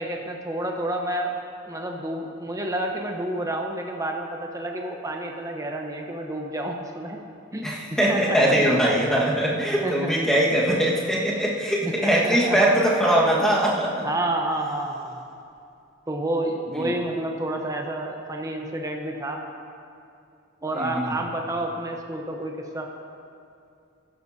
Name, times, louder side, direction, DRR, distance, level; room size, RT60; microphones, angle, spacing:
voice 1, 0.0-1.3 1.7-7.2 7.5-7.7 8.1-8.6 9.8-10.2 12.0-12.6 14.0-15.2 16.1-19.4 20.6-22.9, right 1 dB, 15° right, 2 dB, 0.9 m, -29 dB
voice 2, 7.6-14.0 16.7-16.9 20.7-21.2, right 1 dB, 5° left, -6 dB, 1.5 m, -22 dB
15.0 x 11.5 x 2.8 m, 2.5 s
head